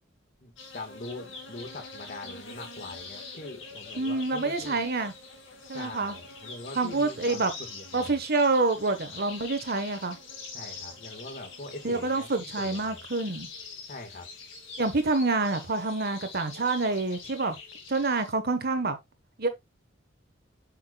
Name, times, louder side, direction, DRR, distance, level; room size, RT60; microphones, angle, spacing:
voice 1, 0.4-4.8 5.7-8.2 10.5-13.1 13.9-14.3, left 2 dB, 50° left, 1.8 m, -43 dB
sound 1, 0.6-18.3, left 4 dB, 80° left, 2.7 m, -44 dB
voice 2, 4.0-5.1 5.7-6.1 6.8-7.5 7.9-10.2 11.8-13.5 14.8-17.6 17.9-19.0 19.4-19.5, right 3 dB, 55° right, 1.3 m, -27 dB
8.7 x 5.9 x 2.4 m
head